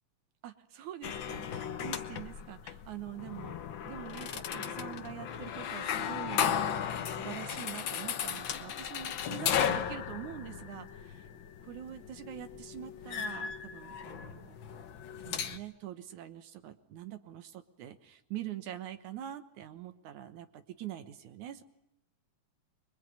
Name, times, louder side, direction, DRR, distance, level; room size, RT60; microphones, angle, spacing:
voice 1, 0.4-3.6 3.8-11.3 11.6-14.6 15.3-21.6, right 11 dB, 80° right, 9 dB, 2.6 m, -44 dB
sound 1, 1.0-15.6, left 8 dB, 55° left, 1.4 m, -36 dB
26.0 x 22.5 x 9.4 m, 0.83 s
omnidirectional pair, 3.4 m